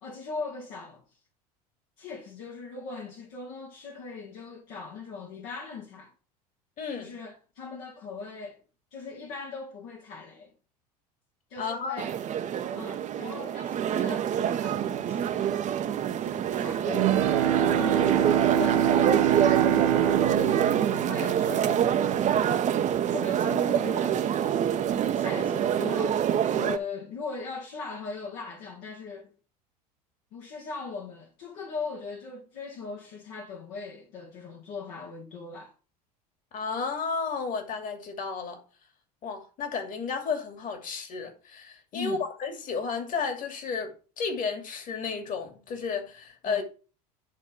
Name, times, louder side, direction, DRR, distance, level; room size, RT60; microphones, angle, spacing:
voice 1, 0.0-1.2 2.0-6.1 6.9-8.6 8.9-10.5 11.5-12.2 12.7-15.7 16.2-19.9 20.3-22.7 23.1-24.8 25.1-29.3 30.3-35.7 41.9-42.2 46.5-46.6, left 4 dB, 65° left, 1.8 m, -40 dB
voice 2, 6.8-7.2 11.6-12.0 36.5-38.6 39.2-46.6, left 5 dB, 40° left, 2.5 m, -32 dB
sound 1, 12.0-26.8, right 9 dB, 40° right, 0.8 m, -26 dB
Bowed string instrument, 16.9-22.1, right 10 dB, 70° right, 1.1 m, -25 dB
10.5 x 3.6 x 6.0 m
hypercardioid pair, 75°, 20 cm